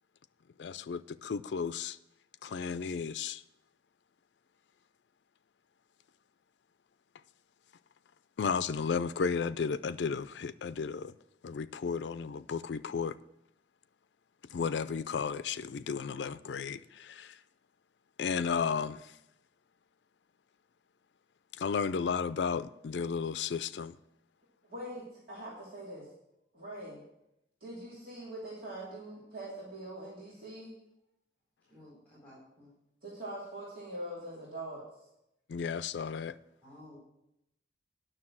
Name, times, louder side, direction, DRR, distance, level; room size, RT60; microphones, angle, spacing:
voice 1, 0.6-2.0 2.4-3.4 8.4-11.1 11.4-13.2 14.5-17.4 18.2-19.1 21.6-24.0 35.5-36.4, left 6 dB, 80° left, 0.4 m, -33 dB
voice 2, 24.7-26.1 26.5-27.0 27.6-30.7 33.0-34.8, right 1 dB, 55° right, 2.8 m, -43 dB
voice 3, 31.7-32.7 36.6-37.0, left 1 dB, 10° left, 3.9 m, -54 dB
9.9 x 6.5 x 7.4 m
head